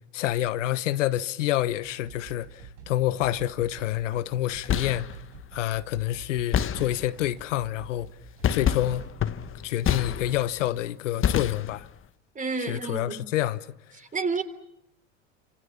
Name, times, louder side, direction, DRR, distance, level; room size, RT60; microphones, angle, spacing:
voice 1, 0.1-5.1 5.5-8.1 8.5-9.1 9.6-11.9 12.7-13.6, left 13 dB, 80° left, 1.1 m, -27 dB
sound 1, 1.8-9.9, right 4 dB, 80° right, 5.4 m, -47 dB
sound 2, 4.5-5.2 6.5-7.3 8.4-10.6 11.2-12.0, left 9 dB, 35° left, 1.5 m, -28 dB
voice 2, 12.4-13.2 13.9-14.4, right 4 dB, 20° right, 3.6 m, -30 dB
29.5 x 27.0 x 7.2 m
hypercardioid pair, 90°, 36 cm